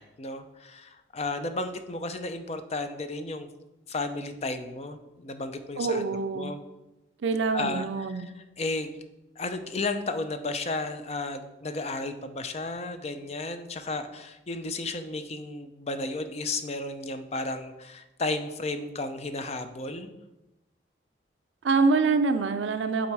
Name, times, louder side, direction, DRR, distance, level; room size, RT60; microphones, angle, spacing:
voice 1, 0.0-3.5 3.9-6.0 6.3-6.6 7.5-9.0 9.4-20.2, left 2 dB, 35° left, 9 dB, 0.5 m, -33 dB
voice 2, 5.8-6.5 7.2-8.3 21.6-23.1, right 4 dB, 75° right, 8 dB, 0.4 m, -25 dB
8.4 x 3.8 x 4.7 m, 0.99 s
head